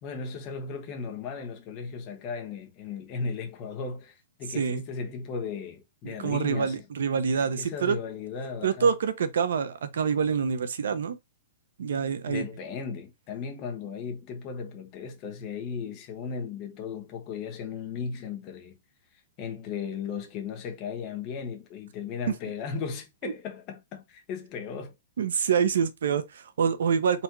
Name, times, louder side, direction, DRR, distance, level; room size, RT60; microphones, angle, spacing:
voice 1, 0.0-6.9 7.4-8.9 12.3-18.8 19.4-24.9, left 5 dB, 25° left, 1.1 m, -36 dB
voice 2, 6.0-8.0 8.6-11.2 11.8-12.4 25.2-27.2, right 6 dB, 85° right, 0.9 m, -26 dB
4.2 x 2.6 x 4.6 m
hypercardioid pair, 170°, 0 cm